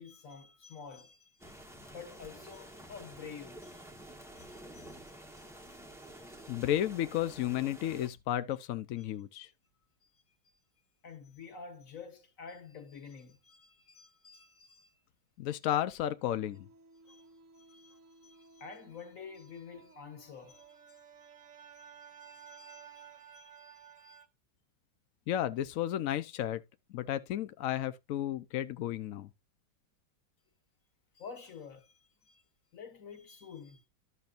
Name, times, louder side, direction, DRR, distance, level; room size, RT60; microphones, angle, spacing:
voice 1, 0.0-1.4 1.8-3.9 4.4-6.5 9.0-9.1 11.0-15.0 17.1-17.3 17.6-20.7 21.2-21.3 21.8-24.2 31.1-32.4 32.7-33.9, left 6 dB, 45° left, 1.6 m, -50 dB
sound 1, 1.4-8.1, right 1 dB, 5° right, 0.5 m, -50 dB
voice 2, 6.5-9.5 15.4-16.7 25.3-26.6 26.9-29.3, left 12 dB, 80° left, 0.7 m, -33 dB
sound 2, 16.2-24.3, right 7 dB, 50° right, 1.1 m, -56 dB
12.0 x 6.8 x 2.5 m
omnidirectional pair, 2.1 m